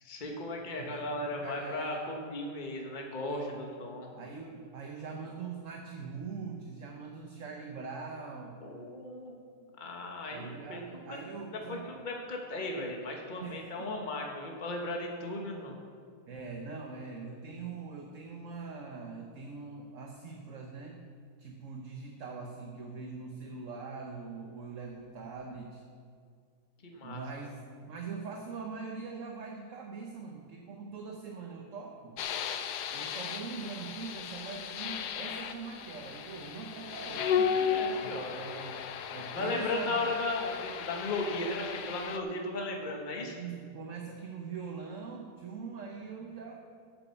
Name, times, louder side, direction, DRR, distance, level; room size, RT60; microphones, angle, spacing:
voice 1, 0.0-4.1 8.6-9.4 9.8-10.8 11.7-15.7 26.8-27.5 37.5-38.7 39.3-43.3, left 2 dB, 30° left, 1 dB, 1.4 m, -36 dB
voice 2, 0.8-2.1 3.3-3.6 4.1-8.6 10.3-11.8 13.4-13.9 16.3-21.0 21.4-25.8 27.0-32.2 32.9-37.4 38.0-40.0 43.2-46.6, right 5 dB, 55° right, 2 dB, 1.3 m, -42 dB
sound 1, 32.2-42.2, left 7 dB, 80° left, 1.3 m, -35 dB
12.5 x 7.7 x 6.9 m, 2.1 s
omnidirectional pair, 1.8 m